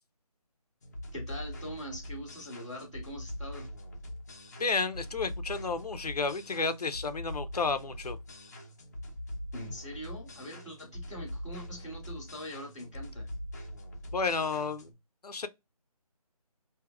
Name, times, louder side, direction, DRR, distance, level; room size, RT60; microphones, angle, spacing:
sound 1, 0.8-14.9, equal, 25° left, 0.7 m, -43 dB
voice 1, 1.1-3.7 9.5-13.3, equal, ahead, 0.7 m, -43 dB
voice 2, 4.6-8.2 14.1-14.9 15.2-15.5, left 4 dB, 85° left, 0.7 m, -31 dB
4.8 x 2.8 x 2.3 m
figure-of-eight pair, 170°, 19 cm